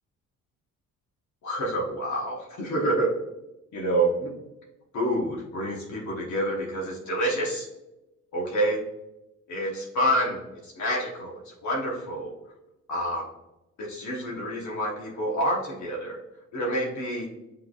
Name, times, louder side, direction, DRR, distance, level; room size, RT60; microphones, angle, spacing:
voice 1, 1.4-3.1 3.7-4.3 4.9-7.7 8.3-8.8 9.5-12.3 12.9-13.3 13.8-16.2 16.5-17.3, right 1 dB, 70° left, -2 dB, 1.1 m, -28 dB
5.9 x 3.3 x 2.4 m, 0.96 s
cardioid pair, 90°, 30 cm